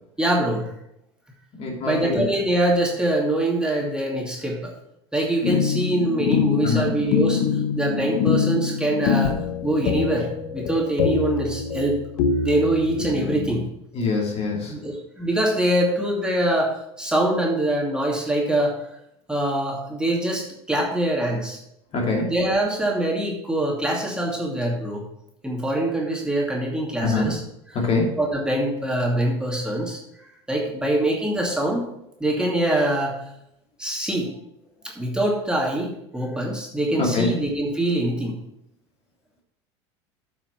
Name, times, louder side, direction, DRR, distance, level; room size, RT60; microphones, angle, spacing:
voice 1, 0.2-0.7 1.8-4.7 5.1-7.4 7.8-12.0 12.4-13.7 14.7-18.8 19.3-21.6 22.3-25.1 25.4-27.4 27.7-27.8 28.2-30.0 30.5-31.9 32.2-33.1 33.8-34.3 34.8-38.4, right 1 dB, 5° right, -2 dB, 2.5 m, -24 dB
voice 2, 1.6-2.2 6.6-6.9 13.9-14.7 21.9-22.3 27.0-27.3 27.7-28.2 37.0-37.3, left 3 dB, 45° left, 0 dB, 2.6 m, -23 dB
sound 1, 5.4-13.7, left 6 dB, 65° left, 1.2 m, -24 dB
9.0 x 5.8 x 6.0 m, 0.80 s
hypercardioid pair, 90°, 15 cm